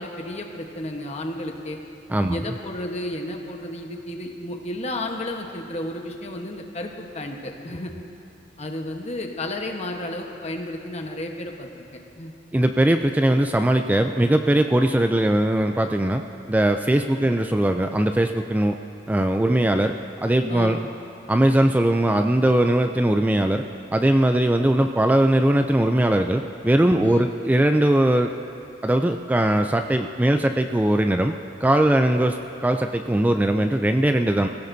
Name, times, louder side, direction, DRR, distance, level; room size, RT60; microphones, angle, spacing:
voice 1, 0.0-1.8 2.3-7.9 8.6-12.3 20.5-20.8 27.0-27.3, left 1 dB, 40° left, 2 dB, 1.1 m, -32 dB
voice 2, 2.1-2.4 12.5-16.2 16.5-18.8 19.1-20.0 20.2-20.8 21.3-23.7 23.9-28.3 28.8-31.3 31.6-34.5, right 1 dB, 10° right, 6 dB, 0.3 m, -20 dB
20.5 x 16.0 x 2.7 m, 2.9 s
head